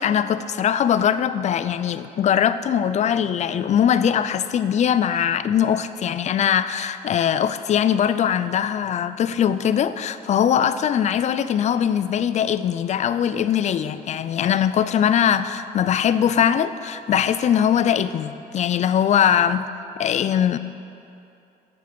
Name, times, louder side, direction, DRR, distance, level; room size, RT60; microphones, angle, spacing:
voice 1, 0.0-19.6 20.0-20.6, left 9 dB, 45° left, 13 dB, 0.5 m, -21 dB
9.3 x 9.2 x 6.8 m, 2.7 s
cardioid pair, 110°, 17 cm